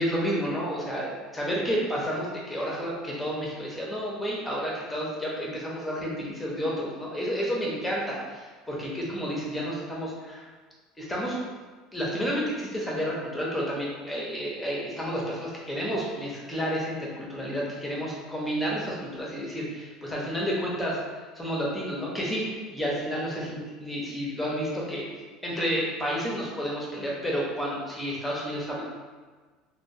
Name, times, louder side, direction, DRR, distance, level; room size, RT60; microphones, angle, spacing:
voice 1, 0.0-10.4 11.0-11.4 11.9-21.0 21.3-25.0 25.4-28.8, equal, 5° left, -4 dB, 0.6 m, -30 dB
2.8 x 2.1 x 2.6 m, 1.4 s
cardioid pair, 135°, 0 cm